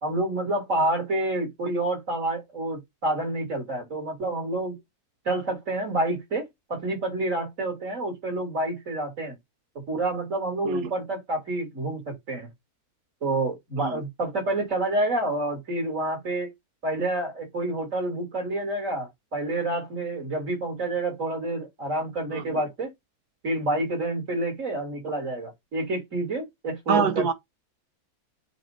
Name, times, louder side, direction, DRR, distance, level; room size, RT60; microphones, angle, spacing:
voice 1, 0.0-4.8 5.3-9.4 9.9-12.5 13.2-16.5 16.8-22.9 23.4-27.2, right 2 dB, 55° right, 4.0 m, -28 dB
voice 2, 22.3-22.6 26.9-27.3, right 6 dB, 85° right, 1.5 m, -25 dB
8.3 x 3.2 x 4.1 m
omnidirectional pair, 1.6 m